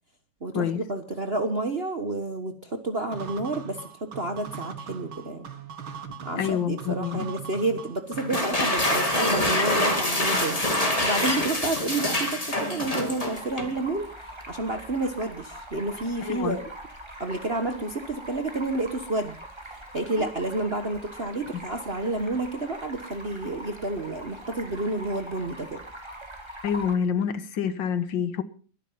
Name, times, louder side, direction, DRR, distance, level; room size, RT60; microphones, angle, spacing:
voice 1, 0.4-5.5 6.2-10.6 11.0-14.1 14.5-16.6 17.2-19.4 19.7-25.8, right 2 dB, 35° right, 1.3 m, -30 dB
sound 1, 3.1-8.7, right 7 dB, 80° right, 2.4 m, -40 dB
voice 2, 6.4-7.3 16.2-16.6 20.2-20.3 26.6-28.4, left 8 dB, 70° left, 1.8 m, -27 dB
sound 2, 8.2-13.8, left 1 dB, 15° left, 2.4 m, -25 dB
Stream, 13.3-26.9, right 1 dB, 15° right, 2.3 m, -43 dB
21.5 x 11.0 x 5.6 m
omnidirectional pair, 2.2 m